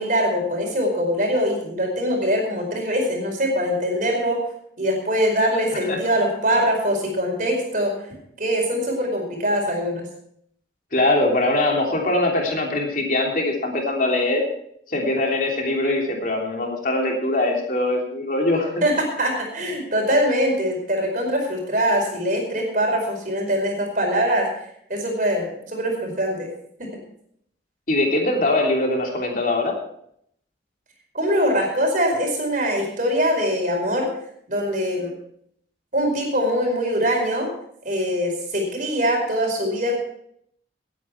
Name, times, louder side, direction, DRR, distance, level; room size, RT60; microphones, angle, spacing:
voice 1, 0.0-4.4 4.8-7.9 8.4-10.1 18.8-24.5 24.9-26.5 26.8-26.9 31.1-34.1 34.5-35.1 35.9-37.5 37.8-40.0, equal, 45° right, 2 dB, 4.8 m, -23 dB
voice 2, 10.9-14.4 14.9-18.8 27.9-29.8, left 2 dB, 50° left, 0 dB, 3.3 m, -22 dB
18.5 x 9.5 x 4.6 m, 0.68 s
head